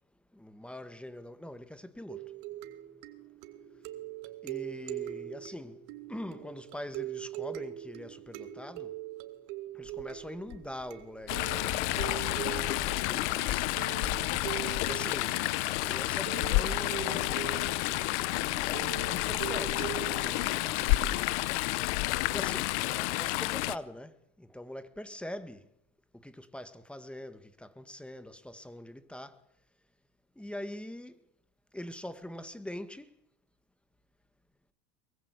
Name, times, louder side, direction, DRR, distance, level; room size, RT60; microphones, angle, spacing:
voice 1, 0.3-2.3 4.4-5.8 6.1-8.9 9.7-13.7 14.8-17.8 18.5-19.8 20.2-21.0 22.3-25.7 26.2-29.4 30.4-31.2 31.7-33.1, left 1 dB, 5° left, 1.9 m, -43 dB
sound 1, 2.1-21.3, right 14 dB, 70° right, 2.8 m, -42 dB
Writing, 9.8-10.0 10.5-14.9, left 9 dB, 60° left, 4.3 m, -39 dB
Chatter / Stream, 11.3-23.7, left 19 dB, 80° left, 1.1 m, -30 dB
23.5 x 22.5 x 8.3 m
supercardioid pair, 125°, 34 cm